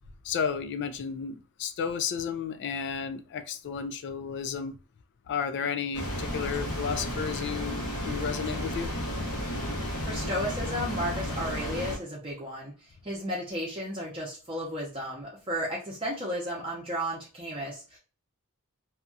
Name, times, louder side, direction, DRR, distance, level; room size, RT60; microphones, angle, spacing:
voice 1, 0.2-4.8 5.3-8.9, left 6 dB, 55° left, 10 dB, 0.3 m, -33 dB
sound 1, 5.9-12.0, equal, 85° left, 1.1 m, -33 dB
voice 2, 10.0-12.7 13.0-18.0, equal, 25° right, -5 dB, 0.7 m, -33 dB
2.7 x 2.3 x 2.6 m, 0.35 s
head